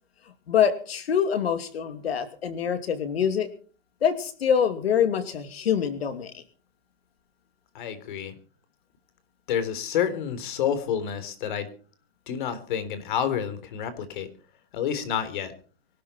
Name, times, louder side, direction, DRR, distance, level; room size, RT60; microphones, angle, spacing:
voice 1, 0.5-3.5 4.0-6.4, left 8 dB, 85° left, 9 dB, 2.8 m, -25 dB
voice 2, 7.7-8.3 9.5-11.7 12.3-14.3 14.7-15.5, left 8 dB, 55° left, 12 dB, 3.7 m, -29 dB
24.0 x 12.5 x 4.5 m, 0.41 s
hypercardioid pair, 160°, 30 cm